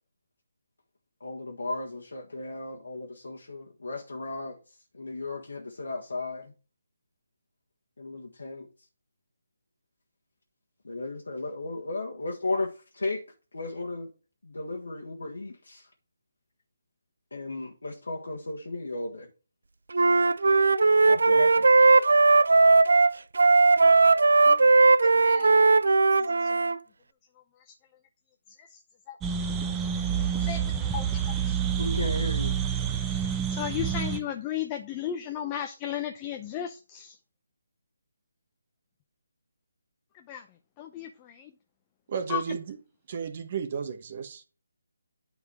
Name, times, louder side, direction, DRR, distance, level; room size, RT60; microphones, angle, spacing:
voice 1, 1.2-4.6 4.9-6.5 8.0-8.7 10.8-13.2 13.5-14.1 14.4-15.9 17.3-19.3 21.1-21.7 31.8-32.6, left 2 dB, 75° left, 1.6 m, -35 dB
Wind instrument woodwind instrument, 19.9-26.8, right 3 dB, 70° right, 0.4 m, -19 dB
voice 2, 25.2-25.6 26.1-26.8 27.7-27.8 28.6-28.8 29.1-29.2 30.4-31.6 33.5-37.2 40.1-40.4 40.8-41.5 42.3-42.4, left 10 dB, 20° left, 0.7 m, -35 dB
sound 1, 29.2-34.2, right 8 dB, 15° right, 0.8 m, -28 dB
voice 3, 42.1-42.8 43.1-44.4, right 6 dB, 40° right, 1.1 m, -33 dB
9.5 x 4.9 x 4.8 m
figure-of-eight pair, 150°, 0 cm